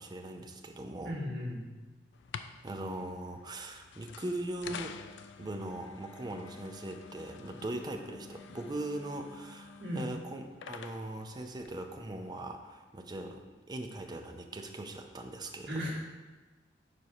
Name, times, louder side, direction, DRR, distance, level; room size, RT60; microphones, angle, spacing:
voice 1, 0.0-1.1 2.6-5.0 5.4-13.4 13.7-15.7, right 1 dB, 25° right, 4 dB, 0.5 m, -40 dB
voice 2, 1.0-1.7 9.8-10.1 15.6-15.9, equal, 75° right, -3 dB, 1.5 m, -36 dB
sound 1, 2.1-12.4, left 6 dB, 75° left, 0.3 m, -49 dB
4.8 x 4.2 x 5.2 m, 1.2 s
head